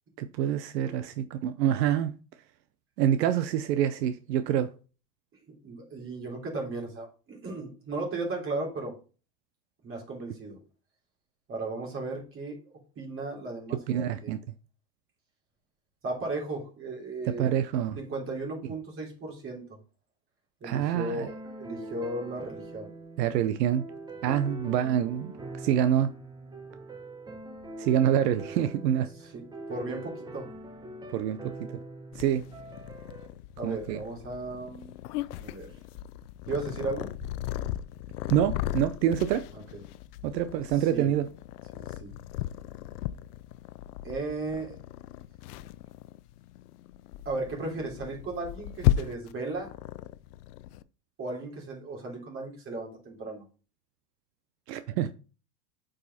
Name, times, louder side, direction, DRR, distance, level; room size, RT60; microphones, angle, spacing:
voice 1, 0.2-2.1 3.0-4.7 13.9-14.4 17.4-18.0 20.6-21.3 23.2-23.8 24.2-25.3 25.6-26.1 27.8-29.1 31.1-31.4 32.2-32.4 33.6-34.0 38.3-39.5 40.2-41.3 54.7-55.1, right 10 dB, 75° right, 0.8 m, -26 dB
voice 2, 5.6-8.9 9.8-10.6 11.5-12.6 13.0-14.3 16.0-17.5 18.0-19.6 20.6-22.9 29.3-30.5 33.6-35.0 35.3-35.7 36.5-37.1 39.5-39.8 40.7-41.1 41.7-42.1 44.0-44.8 47.3-49.7 51.2-53.4, right 2 dB, 25° right, 3.6 m, -36 dB
sound 1, 21.3-33.3, right 1 dB, 10° right, 0.8 m, -43 dB
Purr, 32.1-50.8, left 13 dB, 65° left, 0.6 m, -36 dB
8.4 x 5.4 x 4.1 m
supercardioid pair, 140°, 50 cm